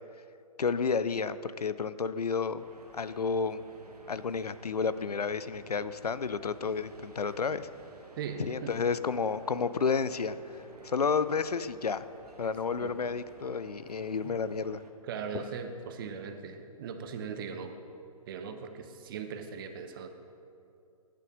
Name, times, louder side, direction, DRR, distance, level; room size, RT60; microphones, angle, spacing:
voice 1, 0.6-2.6 2.9-3.6 4.1-7.7 8.4-10.4 10.8-12.0 12.4-14.8, left 5 dB, 85° left, 14 dB, 0.5 m, -31 dB
sound 1, 2.6-14.9, right 2 dB, 85° right, 1.3 m, -53 dB
voice 2, 8.2-8.8 12.8-13.0 14.2-14.4 15.0-17.7 18.3-20.1, right 6 dB, 35° right, 7 dB, 0.8 m, -39 dB
11.5 x 6.6 x 5.2 m, 2.6 s
figure-of-eight pair, 135°, 19 cm